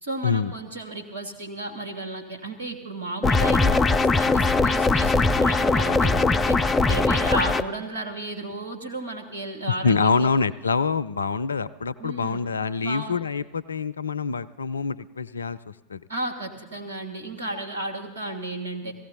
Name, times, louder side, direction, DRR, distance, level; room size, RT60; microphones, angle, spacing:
voice 1, 0.0-6.6 6.9-10.3 12.0-12.4 12.8-13.2 16.1-18.9, right 2 dB, 75° right, 2 dB, 2.3 m, -33 dB
sound 1, 3.2-7.6, left 3 dB, 15° left, 0.6 m, -20 dB
voice 2, 9.8-16.0, left 5 dB, 75° left, 17 dB, 0.4 m, -25 dB
17.0 x 16.0 x 3.9 m, 1.1 s
figure-of-eight pair, 85°, 0 cm